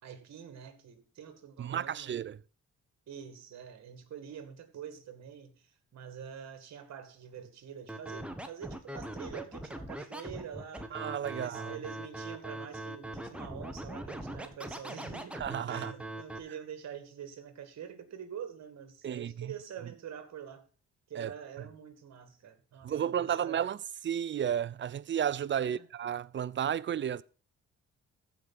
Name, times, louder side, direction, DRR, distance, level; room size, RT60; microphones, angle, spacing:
voice 1, 0.0-2.2 3.1-5.5 5.9-10.9 11.3-20.6 21.1-23.6 25.6-25.9, right 8 dB, 60° right, 2.1 m, -46 dB
voice 2, 1.6-2.4 10.9-11.8 15.3-15.9 19.0-19.5 21.2-21.3 22.8-23.8 24.0-27.2, right 9 dB, 40° right, 0.5 m, -32 dB
Scratching (performance technique), 7.9-16.4, right 1 dB, 5° right, 1.4 m, -41 dB
14.5 x 5.0 x 5.8 m
cardioid pair, 90°, 30 cm